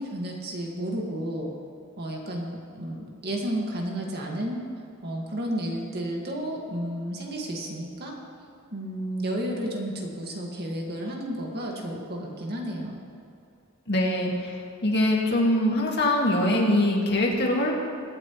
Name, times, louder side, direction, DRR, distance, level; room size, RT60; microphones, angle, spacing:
voice 1, 0.0-1.5 2.0-4.6 5.0-8.1 8.7-13.0, right 1 dB, 50° right, -1 dB, 1.9 m, -32 dB
voice 2, 13.9-17.7, left 1 dB, 50° left, -1 dB, 2.0 m, -23 dB
23.5 x 8.7 x 3.1 m, 2.5 s
head